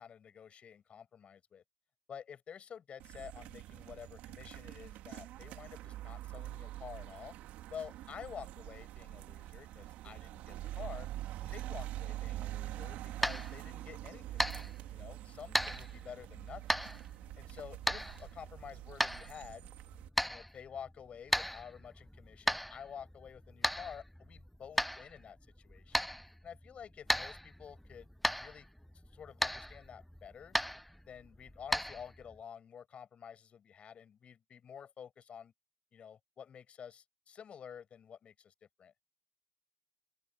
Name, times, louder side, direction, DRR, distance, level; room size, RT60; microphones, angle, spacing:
voice 1, 0.0-1.6 2.1-7.3 7.7-11.1 11.4-16.9 17.4-19.7 20.2-26.1 26.4-28.1 28.3-28.7 29.1-30.6 31.1-35.5 35.9-38.9, left 7 dB, 45° left, 5.7 m, -50 dB
sound 1, 3.0-20.1, right 15 dB, 65° right, 3.0 m, -45 dB
sound 2, 12.5-32.4, equal, ahead, 0.5 m, -38 dB
open air
hypercardioid pair, 50°, 3 cm